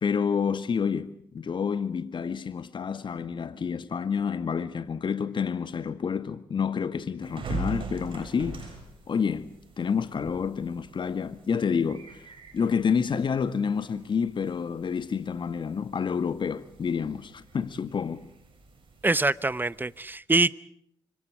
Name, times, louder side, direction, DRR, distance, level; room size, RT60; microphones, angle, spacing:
voice 1, 0.0-8.7 9.1-12.2 12.5-18.3, left 6 dB, 50° left, 1.8 m, -29 dB
sound 1, 7.2-20.0, right 3 dB, 55° right, 7.5 m, -43 dB
voice 2, 19.0-20.6, right 2 dB, 20° right, 0.9 m, -24 dB
29.5 x 25.0 x 5.0 m
hypercardioid pair, 45°, 11 cm